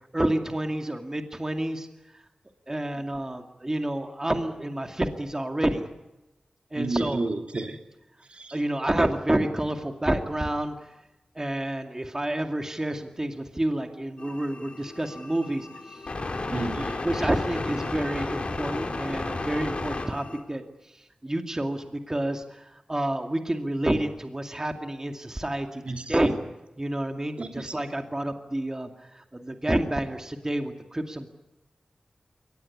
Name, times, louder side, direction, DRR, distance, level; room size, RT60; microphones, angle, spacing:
voice 1, 0.1-1.9 2.7-5.8 6.7-7.2 8.5-10.7 11.4-16.0 17.0-20.6 21.2-25.8 26.1-26.4 26.8-31.3, right 1 dB, 25° right, 4 dB, 2.3 m, -29 dB
voice 2, 6.8-7.8 8.4-8.6 16.5-17.0 25.8-26.3 27.4-27.7, right 2 dB, 60° right, 3 dB, 2.9 m, -31 dB
sound 1, 14.2-20.4, left 2 dB, 60° left, 4.7 m, -33 dB
23.0 x 19.0 x 9.7 m, 0.99 s
cardioid pair, 50°, 2 cm